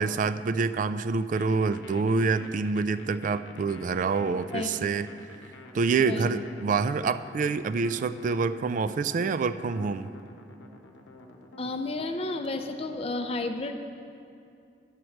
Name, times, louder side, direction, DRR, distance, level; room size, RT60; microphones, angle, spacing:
voice 1, 0.0-5.1 5.7-10.1, right 4 dB, 45° right, 13 dB, 0.3 m, -27 dB
sound 1, 1.4-13.0, left 2 dB, 85° left, 0.8 m, -49 dB
voice 2, 4.5-4.9 6.0-6.4 11.6-13.7, left 2 dB, 35° left, 6 dB, 0.5 m, -32 dB
11.0 x 4.6 x 6.4 m, 2.5 s
head